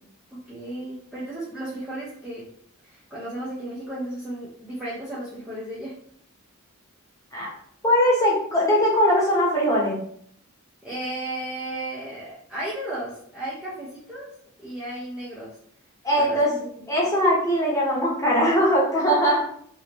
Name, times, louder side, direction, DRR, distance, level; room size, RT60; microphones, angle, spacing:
voice 1, 0.3-2.5 2.8-5.9 10.8-14.3 14.6-15.5 16.2-17.0, right 1 dB, 5° right, -9 dB, 0.7 m, -34 dB
voice 2, 7.8-10.0 16.0-16.5 16.9-19.4, equal, 15° left, -5 dB, 1.0 m, -20 dB
3.4 x 2.7 x 3.0 m, 0.64 s
head